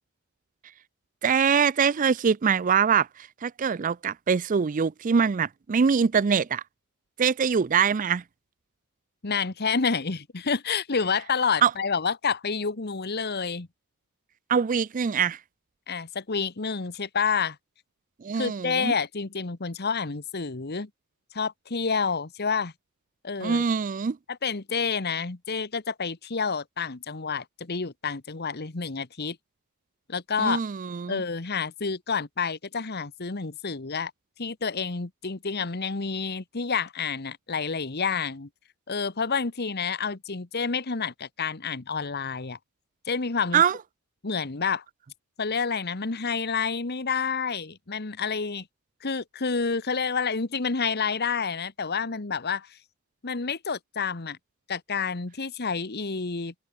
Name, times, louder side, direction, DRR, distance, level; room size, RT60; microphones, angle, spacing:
voice 1, 1.2-3.1 3.4-6.6 7.2-8.2 11.6-11.7 14.5-15.4 18.2-18.9 23.4-24.2 30.4-31.2 43.5-43.8, right 6 dB, 35° right, 0.4 m, -23 dB
voice 2, 9.2-13.7 15.9-17.6 18.3-20.9 21.3-22.7 23.2-23.6 24.3-29.4 30.1-30.6 31.1-34.1 34.4-38.5 38.9-42.6 43.1-43.6 44.2-44.8 45.4-48.7 49.0-52.8 53.2-54.4 54.7-56.5, left 5 dB, 50° left, 1.2 m, -29 dB
head